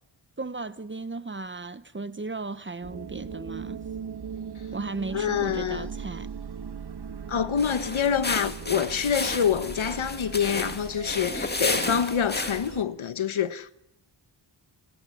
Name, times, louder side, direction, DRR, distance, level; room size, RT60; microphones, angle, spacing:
voice 1, 0.4-3.8 4.7-6.3, right 3 dB, 25° right, 0.9 m, -35 dB
sound 1, 2.8-12.8, right 6 dB, 55° right, 1.6 m, -39 dB
voice 2, 5.1-5.9 7.3-13.7, left 8 dB, 75° left, 1.3 m, -26 dB
sound 2, 7.5-12.8, left 2 dB, 20° left, 2.2 m, -32 dB
26.5 x 20.0 x 9.9 m
wide cardioid pair, 105°, 48 cm